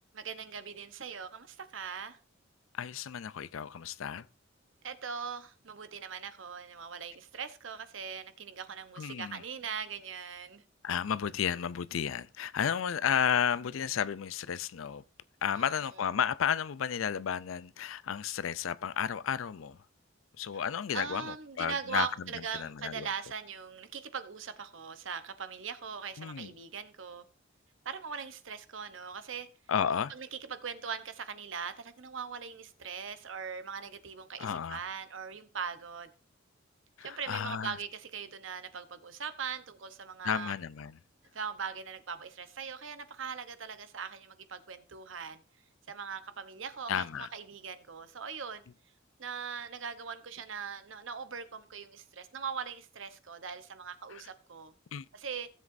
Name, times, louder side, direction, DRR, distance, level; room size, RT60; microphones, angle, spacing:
voice 1, 0.1-2.2 4.8-10.6 15.6-15.7 20.9-27.2 27.8-29.5 30.1-36.1 37.0-40.5 41.3-45.4 45.9-48.6 49.2-54.7 55.1-55.5, right 6 dB, 70° right, 0.9 m, -40 dB
voice 2, 2.7-4.3 9.0-9.4 10.8-15.0 15.4-19.8 20.4-23.1 26.2-26.5 29.7-30.1 34.4-34.8 37.0-37.8 40.2-41.0 46.9-47.3 54.1-54.2 54.9-55.0, left 8 dB, 90° left, 0.4 m, -32 dB
16.5 x 7.4 x 2.6 m
head